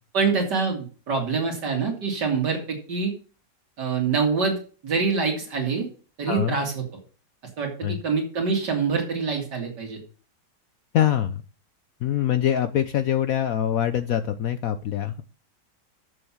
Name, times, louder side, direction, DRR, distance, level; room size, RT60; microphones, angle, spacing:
voice 1, 0.1-3.1 3.8-4.6 4.8-5.9 6.2-6.8 7.6-10.0, right 5 dB, 70° right, 1 dB, 2.7 m, -25 dB
voice 2, 10.9-11.4 12.0-15.2, left 10 dB, 65° left, 11 dB, 1.0 m, -24 dB
7.1 x 6.7 x 7.2 m, 0.38 s
omnidirectional pair, 1.9 m